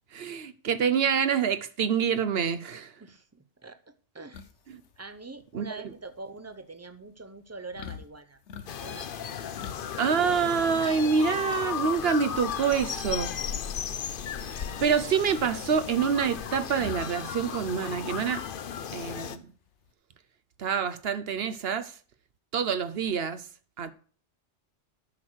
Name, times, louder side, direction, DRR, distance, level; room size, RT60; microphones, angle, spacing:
voice 1, 0.1-2.9 4.7-4.8 5.5-5.9 10.0-13.4 14.5-18.4 18.9-19.5 20.6-22.0 22.5-23.5 23.8-23.9, right 6 dB, 65° right, 1.0 m, -27 dB
voice 2, 3.0-4.5 5.0-8.4 8.8-9.3, right 3 dB, 15° right, 0.6 m, -44 dB
sound 1, 4.3-19.9, left 7 dB, 85° left, 1.1 m, -48 dB
sound 2, 8.7-19.4, left 8 dB, 55° left, 0.8 m, -35 dB
9.9 x 6.2 x 6.2 m
omnidirectional pair, 1.2 m